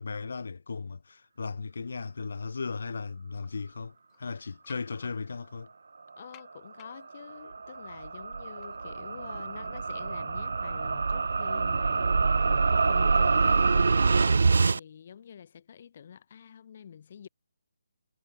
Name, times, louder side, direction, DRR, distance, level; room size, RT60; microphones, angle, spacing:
voice 1, 0.0-5.7, left 4 dB, 65° left, 2.7 m, -36 dB
sound 1, 1.7-2.7 3.3-3.5 4.0-5.6 6.3-10.2 10.6-11.6, left 28 dB, 15° left, 2.9 m, -62 dB
voice 2, 6.2-17.3, left 8 dB, 35° left, 2.5 m, -47 dB
sound 2, 7.0-14.8, right 4 dB, 70° right, 0.8 m, -25 dB
hypercardioid pair, 170°, 0 cm